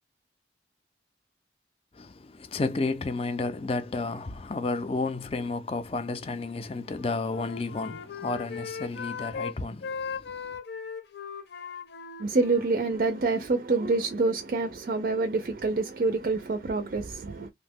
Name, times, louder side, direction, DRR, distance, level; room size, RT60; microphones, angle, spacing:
voice 1, 1.9-10.4, left 3 dB, 30° left, 0.4 m, -32 dB
Wind instrument woodwind instrument, 6.8-9.5 9.8-13.4, left 6 dB, 70° left, 0.6 m, -39 dB
voice 2, 12.2-17.5, right 3 dB, 55° right, 0.4 m, -27 dB
2.7 x 2.1 x 3.5 m
head